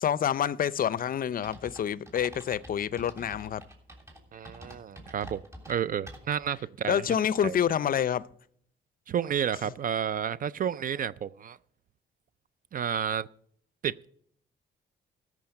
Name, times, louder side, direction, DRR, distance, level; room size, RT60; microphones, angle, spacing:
voice 1, 0.0-3.6 6.9-8.2, left 9 dB, 45° left, 0.5 m, -27 dB
sound 1, 1.4-6.5, equal, 15° right, 3.3 m, -47 dB
voice 2, 4.3-5.4 5.7-7.0 7.4-7.6 9.1-11.6 12.7-13.3 13.8-14.1, right 8 dB, 45° right, 0.4 m, -31 dB
13.0 x 6.2 x 7.7 m
cardioid pair, 90°, 20 cm